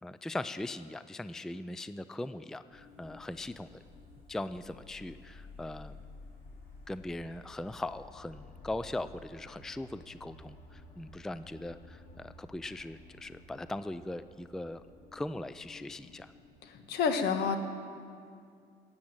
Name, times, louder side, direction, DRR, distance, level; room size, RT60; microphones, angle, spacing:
voice 1, 0.0-3.8 4.3-6.0 6.9-14.8 15.1-16.3, left 2 dB, 5° left, 13 dB, 0.3 m, -40 dB
sound 1, 2.7-16.8, left 2 dB, 55° left, 4.0 m, -53 dB
voice 2, 16.6-17.6, left 6 dB, 75° left, 6 dB, 1.5 m, -29 dB
14.5 x 8.7 x 8.9 m, 2.3 s
cardioid pair, 110°, 17 cm